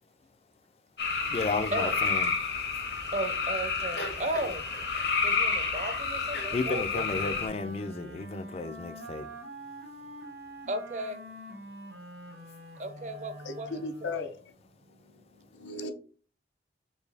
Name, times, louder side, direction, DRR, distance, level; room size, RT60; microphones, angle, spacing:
sound 1, 1.0-7.5, left 4 dB, 70° left, 1.0 m, -30 dB
voice 1, 1.3-2.4 2.7-2.8 6.5-9.3, left 3 dB, 35° left, 0.3 m, -33 dB
voice 2, 3.1-4.7 5.2-7.4 10.7-11.2 12.8-14.2, right 1 dB, 40° right, 0.5 m, -35 dB
Wind instrument woodwind instrument, 6.9-14.3, right 1 dB, 70° right, 1.1 m, -45 dB
voice 3, 13.4-14.5 14.9-15.9, left 3 dB, 90° left, 0.6 m, -38 dB
4.4 x 2.6 x 3.3 m
head